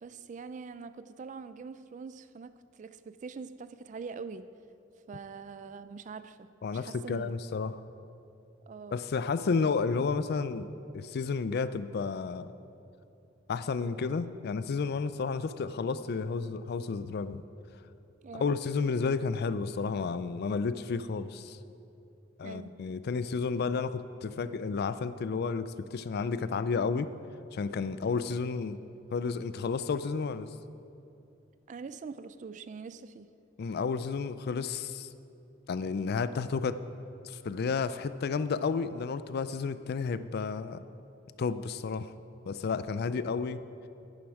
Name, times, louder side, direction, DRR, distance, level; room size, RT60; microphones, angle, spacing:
voice 1, 0.0-4.5 5.1-6.5 6.7-7.3 8.7-9.0 18.2-18.5 22.4-22.8 31.7-33.3, right 5 dB, 40° right, 13 dB, 0.3 m, -44 dB
voice 2, 6.6-7.8 8.9-10.7 10.9-12.5 13.5-17.4 18.3-21.6 22.4-27.1 27.5-28.8 29.1-30.5 33.6-35.1 35.7-36.8 37.2-40.8 41.4-42.1 42.5-43.6, left 5 dB, 55° left, 13 dB, 0.4 m, -31 dB
10.5 x 9.6 x 4.7 m, 2.6 s
head